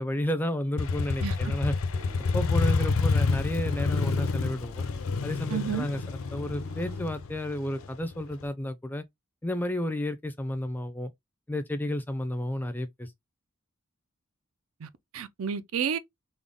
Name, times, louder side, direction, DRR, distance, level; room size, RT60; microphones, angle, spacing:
voice 1, 0.0-1.7 2.3-4.9 5.2-6.0 6.3-9.0 9.4-11.1 11.5-13.1, left 1 dB, 10° left, 0.4 m, -31 dB
Motorcycle, 0.8-8.4, left 4 dB, 65° left, 0.4 m, -28 dB
sound 1, 1.9-7.0, left 1 dB, 90° right, 1.8 m, -48 dB
voice 2, 5.5-5.9 14.8-16.0, right 8 dB, 70° right, 0.4 m, -31 dB
3.7 x 2.0 x 3.5 m
head